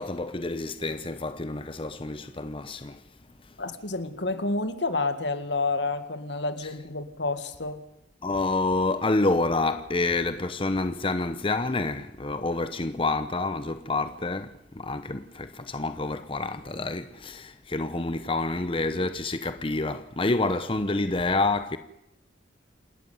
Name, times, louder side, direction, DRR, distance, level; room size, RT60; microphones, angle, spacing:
voice 1, 0.0-3.0 8.2-21.8, left 2 dB, 30° left, 0.9 m, -28 dB
voice 2, 3.6-7.8, left 3 dB, 70° left, 2.0 m, -29 dB
27.5 x 13.5 x 9.5 m
head